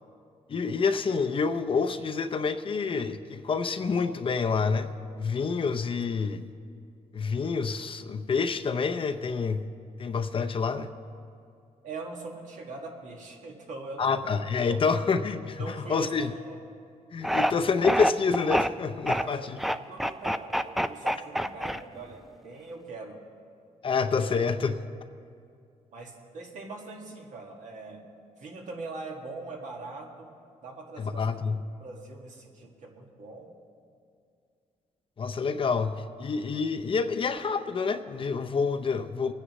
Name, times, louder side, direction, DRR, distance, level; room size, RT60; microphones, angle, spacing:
voice 1, 0.5-4.9 5.2-6.4 7.1-9.7 10.0-10.9 14.0-16.3 17.1-19.6 23.8-24.8 31.0-31.6 35.2-39.3, left 5 dB, 45° left, 8 dB, 0.6 m, -28 dB
voice 2, 11.8-14.3 14.7-14.8 15.6-16.6 19.1-23.2 25.9-28.1 28.4-30.4 30.6-31.4 31.8-33.5, right 3 dB, 70° right, 0 dB, 1.9 m, -42 dB
sound 1, 17.2-17.5 17.8-18.7 19.1-19.2 19.6-22.1, equal, ahead, 0.4 m, -26 dB
23.5 x 9.9 x 3.1 m, 2.4 s
cardioid pair, 95°, 13 cm